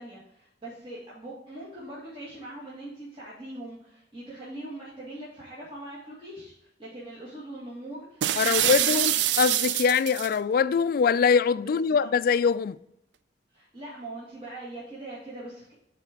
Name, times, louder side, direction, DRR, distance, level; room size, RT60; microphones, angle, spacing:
voice 1, 0.0-9.2 11.6-12.1 13.5-15.7, right 1 dB, 30° right, 2.0 m, -42 dB
sound 1, 8.2-10.3, right 11 dB, 85° right, 0.4 m, -25 dB
voice 2, 8.4-12.8, left 6 dB, 55° left, 0.3 m, -23 dB
9.7 x 4.2 x 3.6 m
head